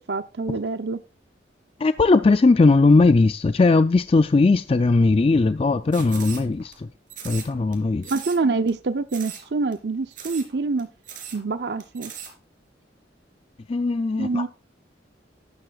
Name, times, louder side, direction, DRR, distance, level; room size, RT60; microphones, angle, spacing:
voice 1, 0.1-1.0 8.0-10.9 11.3-12.1 14.2-14.5, right 3 dB, 65° right, 0.7 m, -26 dB
voice 2, 1.8-6.9 7.2-8.1 13.7-14.5, left 3 dB, 30° left, 0.4 m, -18 dB
sound 1, 5.9-6.7 7.1-7.7 8.0-8.4 8.7-8.8 9.1-9.5 9.7-9.8 10.1-10.5 10.8-10.9 11.1-11.4 11.8-12.3, right 8 dB, 50° right, 3.4 m, -38 dB
12.0 x 11.5 x 2.4 m
head